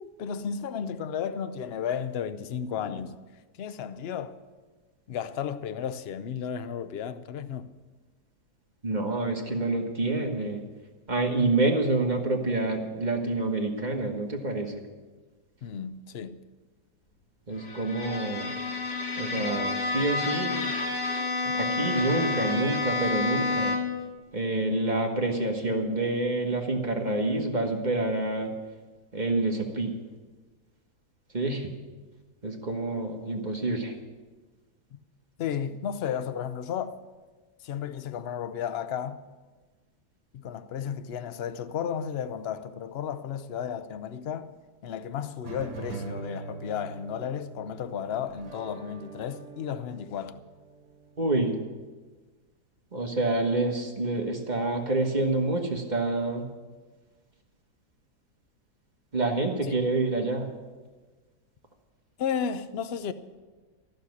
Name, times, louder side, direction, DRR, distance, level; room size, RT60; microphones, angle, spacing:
voice 1, 0.0-3.2 3.6-4.4 5.1-7.7 15.6-16.4 21.4-21.5 34.9-35.0 35.4-37.0 37.6-39.2 40.3-44.5 44.8-50.4 59.6-59.8 62.2-63.1, left 8 dB, 65° left, 0.6 m, -33 dB
voice 2, 8.8-10.6 11.1-14.8 17.5-18.5 19.2-20.6 21.5-23.8 24.3-28.6 29.1-30.0 31.3-31.7 32.4-33.9 51.2-51.6 52.9-56.4 59.1-60.5, right 2 dB, 30° right, 1.3 m, -27 dB
Bowed string instrument, 17.6-24.1, left 3 dB, 80° left, 2.6 m, -29 dB
sound 1, 45.4-51.6, right 4 dB, 70° right, 1.7 m, -43 dB
14.5 x 6.7 x 9.5 m
omnidirectional pair, 1.8 m